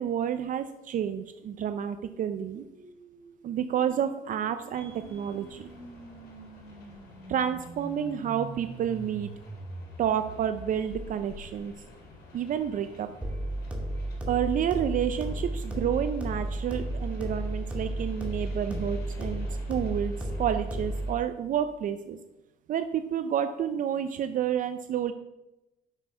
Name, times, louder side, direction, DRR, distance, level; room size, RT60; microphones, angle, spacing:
voice 1, 0.0-2.6 3.4-5.6 7.3-9.3 10.0-11.7 12.3-13.1 14.3-20.1 20.4-22.2 22.7-25.1, right 9 dB, 50° right, 10 dB, 0.5 m, -30 dB
sound 1, 1.7-11.8, right 2 dB, 35° right, 3.6 m, -46 dB
sound 2, 4.7-21.1, left 2 dB, 70° left, 3.3 m, -51 dB
sound 3, 13.2-21.2, right 1 dB, 5° right, 1.9 m, -33 dB
8.0 x 6.1 x 5.7 m, 0.96 s
cardioid pair, 110°, 17 cm